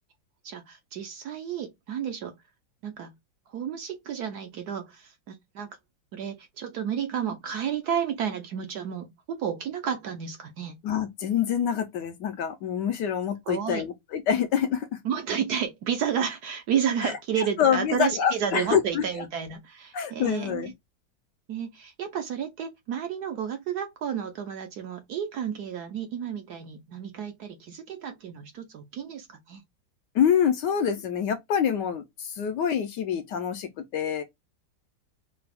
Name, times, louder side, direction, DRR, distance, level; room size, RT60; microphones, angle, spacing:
voice 1, 0.4-2.3 2.8-3.1 3.5-5.7 6.1-10.7 13.5-13.8 15.0-20.7 21.5-29.6, right 8 dB, 65° right, 1.1 m, -31 dB
voice 2, 10.8-15.0 17.0-19.0 19.9-20.7 30.1-34.2, left 8 dB, 70° left, 1.1 m, -26 dB
4.7 x 2.3 x 3.3 m
omnidirectional pair, 2.2 m